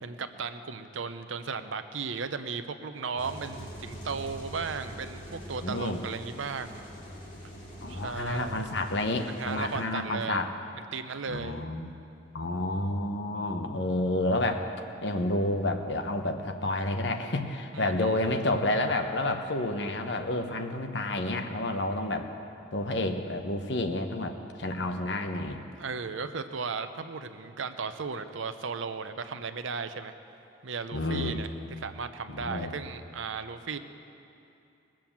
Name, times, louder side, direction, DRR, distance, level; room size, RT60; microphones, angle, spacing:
voice 1, 0.0-6.8 7.9-8.7 9.3-10.4 10.9-11.7 17.7-18.1 25.8-30.1 30.6-31.5 31.8-33.8, right 5 dB, 75° right, 10 dB, 0.7 m, -35 dB
sound 1, 3.2-9.8, equal, 40° left, 2.5 m, -44 dB
voice 2, 5.6-6.0 7.8-10.5 11.3-11.9 12.3-14.7 15.0-22.3 22.7-25.6 30.9-31.4 32.3-32.7, left 1 dB, 60° left, 6 dB, 1.0 m, -30 dB
20.0 x 7.6 x 7.3 m, 2.7 s
head